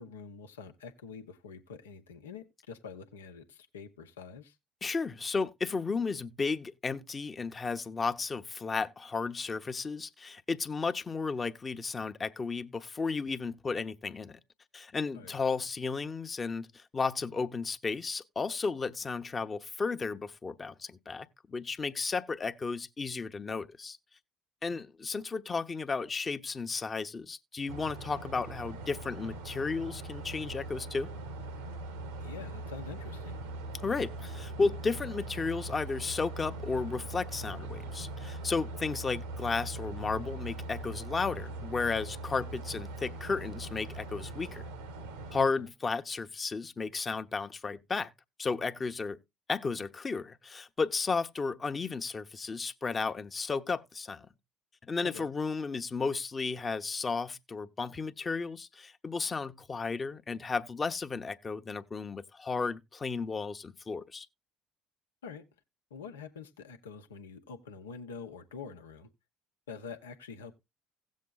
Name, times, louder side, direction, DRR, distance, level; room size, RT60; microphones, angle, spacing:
voice 1, 0.0-4.5 15.1-15.4 24.7-24.8 32.2-33.4 45.4-45.5 55.0-55.3 65.2-65.4 65.9-69.1 69.7-70.6, left 5 dB, 85° left, 0.9 m, -46 dB
voice 2, 4.8-14.4 14.7-24.0 24.6-31.1 33.8-44.6 45.3-48.1 48.4-49.2 49.5-54.3 54.8-64.3, left 4 dB, 30° left, 0.9 m, -33 dB
sound 1, 27.7-45.4, right 2 dB, 85° right, 1.1 m, -41 dB
17.0 x 7.4 x 2.3 m
hypercardioid pair, 60°, 0 cm